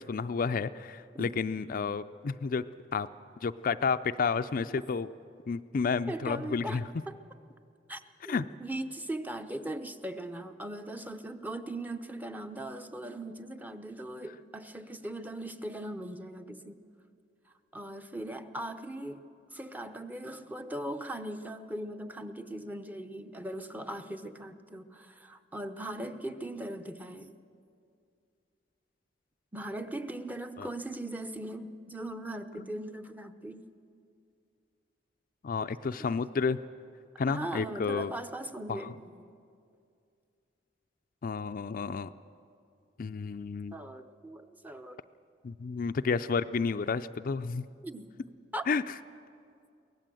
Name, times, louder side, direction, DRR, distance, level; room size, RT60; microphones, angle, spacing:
voice 1, 0.1-2.6 2.9-3.1 3.4-5.1 5.5-6.8 8.3-8.4 30.6-30.7 35.4-36.6 37.2-38.1 38.7-38.8 41.2-42.1 43.0-43.8 45.4-47.7 48.7-48.9, left 5 dB, 50° left, 11 dB, 0.4 m, -31 dB
voice 2, 6.1-7.2 7.9-16.8 17.7-19.2 19.5-27.4 29.5-33.7 35.6-35.7 36.0-36.4 37.3-39.1 43.7-45.0 47.8-48.7, right 1 dB, 10° right, 8 dB, 0.8 m, -39 dB
23.5 x 17.5 x 7.7 m, 2.4 s
head